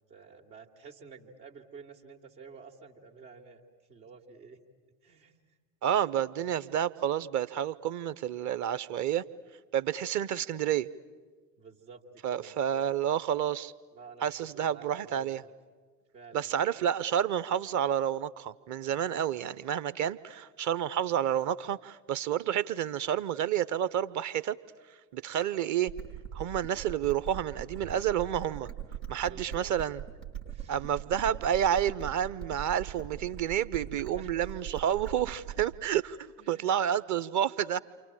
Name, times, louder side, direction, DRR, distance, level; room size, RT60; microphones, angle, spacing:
voice 1, 0.1-3.6 3.9-4.6 5.0-5.6 11.6-13.0 13.9-15.5 16.1-16.6 29.3-29.7 30.4-30.8 34.1-34.3 36.4-36.8, right 5 dB, 70° right, 0 dB, 2.5 m, -51 dB
voice 2, 5.8-9.2 9.7-10.9 12.2-13.7 14.2-15.4 16.3-24.6 25.1-25.9 26.3-28.7 29.1-30.0 30.7-37.8, right 10 dB, 35° right, 17 dB, 0.8 m, -30 dB
sound 1, 25.9-35.9, right 9 dB, 85° right, 2.0 m, -41 dB
29.0 x 27.0 x 7.5 m, 1.5 s
figure-of-eight pair, 60°, 50 cm